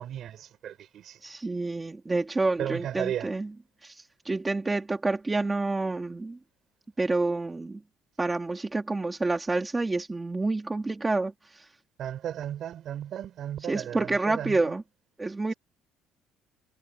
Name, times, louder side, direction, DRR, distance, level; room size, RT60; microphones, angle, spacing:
voice 1, 0.0-1.2 2.6-3.3 12.0-14.7, right 10 dB, 45° right, 5.8 m, -35 dB
voice 2, 1.2-3.5 3.8-6.4 7.0-7.8 8.2-11.7 13.6-14.8 15.2-15.5, right 3 dB, 10° right, 2.4 m, -28 dB
cardioid pair, 165°, 0 cm